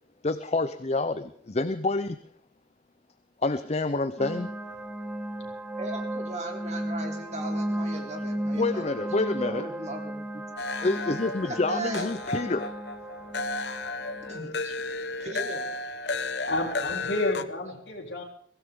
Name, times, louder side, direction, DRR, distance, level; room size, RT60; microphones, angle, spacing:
voice 1, 0.2-2.2 3.4-4.5 8.5-9.7 10.8-12.7, left 2 dB, 35° left, 11 dB, 0.7 m, -28 dB
sound 1, 4.2-14.4, right 1 dB, 5° right, 1.6 m, -34 dB
voice 2, 5.8-9.0 9.4-10.4 11.4-12.1 14.3-15.7, right 1 dB, 40° right, 3 dB, 3.3 m, -38 dB
sound 2, 10.6-17.4, left 3 dB, 60° left, 0.9 m, -33 dB
voice 3, 16.5-18.2, left 2 dB, 80° left, 1 dB, 3.9 m, -30 dB
23.5 x 16.0 x 3.7 m, 0.65 s
head